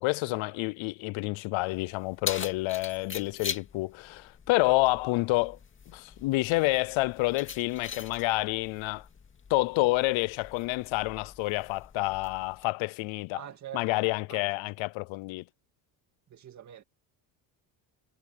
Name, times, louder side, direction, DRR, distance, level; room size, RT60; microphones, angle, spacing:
voice 1, 0.0-5.6 5.9-9.1 9.5-13.4 13.7-15.4, left 21 dB, 70° left, 0.7 m, -28 dB
Keys jangling, 1.6-12.6, left 6 dB, 25° left, 2.2 m, -43 dB
voice 2, 13.3-14.4 16.3-16.8, right 10 dB, 35° right, 2.0 m, -45 dB
cardioid pair, 165°, 48 cm